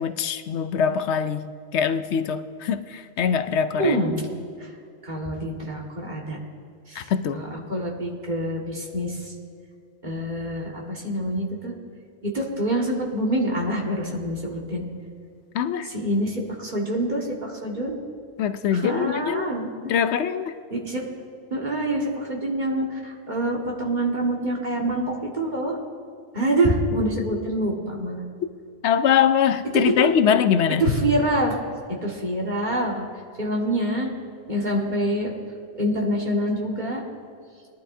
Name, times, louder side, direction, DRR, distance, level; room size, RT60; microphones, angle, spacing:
voice 1, 0.0-4.0 7.0-7.4 15.5-15.9 18.4-19.5 19.8-20.5 28.8-30.8, left 8 dB, 75° left, 11 dB, 0.9 m, -23 dB
voice 2, 3.8-4.3 4.6-4.7 5.0-6.4 6.9-9.3 10.0-11.7 12.2-14.8 15.9-18.0 18.7-19.7 20.7-21.0 21.5-25.8 26.3-28.2 29.7-30.1 30.8-31.6 31.9-33.1 33.4-34.1 34.5-35.3 35.8-37.0, right 1 dB, 40° right, -2 dB, 1.9 m, -26 dB
21.0 x 11.0 x 2.7 m, 2.3 s
omnidirectional pair, 1.2 m